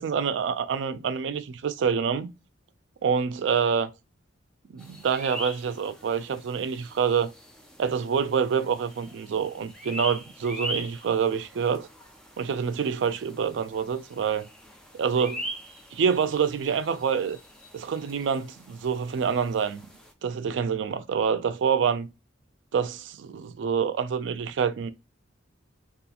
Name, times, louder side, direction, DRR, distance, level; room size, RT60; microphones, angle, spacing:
voice 1, 0.0-2.3 3.0-3.9 4.7-7.3 7.8-11.9 12.4-14.5 14.9-15.4 15.9-17.4 17.7-19.8 20.2-22.1 22.7-24.9, right 6 dB, 70° right, 0.3 m, -26 dB
sound 1, 4.8-20.1, equal, 5° left, 0.4 m, -42 dB
2.8 x 2.4 x 2.4 m
head